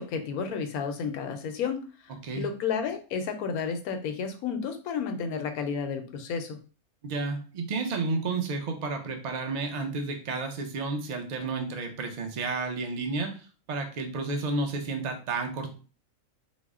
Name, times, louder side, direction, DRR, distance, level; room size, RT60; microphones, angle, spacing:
voice 1, 0.0-6.6, left 6 dB, 85° left, 6 dB, 1.1 m, -32 dB
voice 2, 7.0-15.7, right 3 dB, 45° right, 4 dB, 0.5 m, -31 dB
4.0 x 2.1 x 3.5 m, 0.36 s
omnidirectional pair, 1.5 m